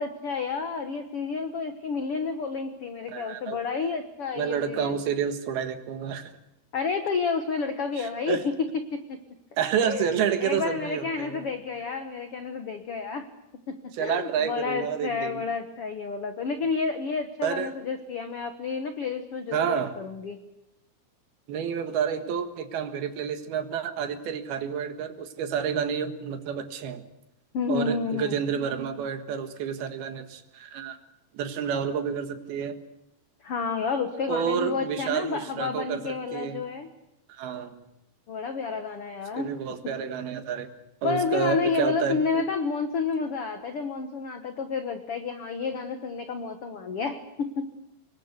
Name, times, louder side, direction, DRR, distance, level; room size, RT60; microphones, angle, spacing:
voice 1, 0.0-5.0 6.7-8.5 8.9-9.2 9.8-13.3 13.7-20.4 27.5-28.4 33.4-36.9 38.3-39.5 41.0-47.7, left 5 dB, 75° left, 8 dB, 1.3 m, -30 dB
voice 2, 3.1-3.6 4.4-6.3 8.0-8.5 9.6-11.5 14.0-15.4 17.4-17.7 19.5-19.9 21.5-27.0 27.7-31.0 31.3-32.8 34.3-36.6 37.4-37.8 39.4-40.7 41.0-42.4, right 7 dB, 70° right, 8 dB, 3.4 m, -29 dB
25.5 x 22.0 x 8.2 m, 0.87 s
omnidirectional pair, 4.6 m